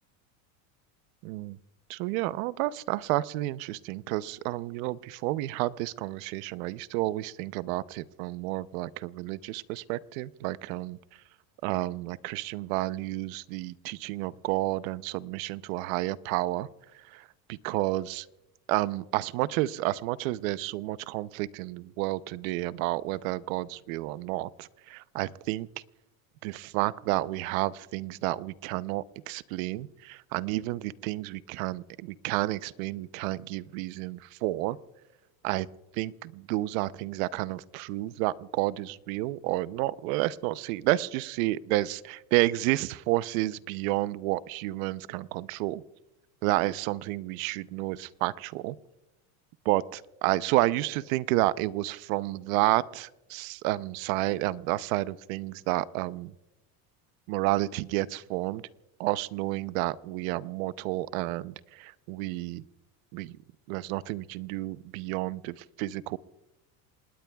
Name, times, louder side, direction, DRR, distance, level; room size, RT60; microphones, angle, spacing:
voice 1, 1.2-1.6 1.9-11.0 11.6-16.7 16.9-18.3 18.7-25.7 26.4-34.8 35.4-35.7 35.9-45.8 46.4-48.8 49.6-56.3 57.3-58.6 59.0-62.6 63.1-63.4 63.7-66.2, right 17 dB, 75° right, 17 dB, 0.7 m, -30 dB
28.0 x 19.5 x 2.3 m, 1.0 s
supercardioid pair, 135°, 42 cm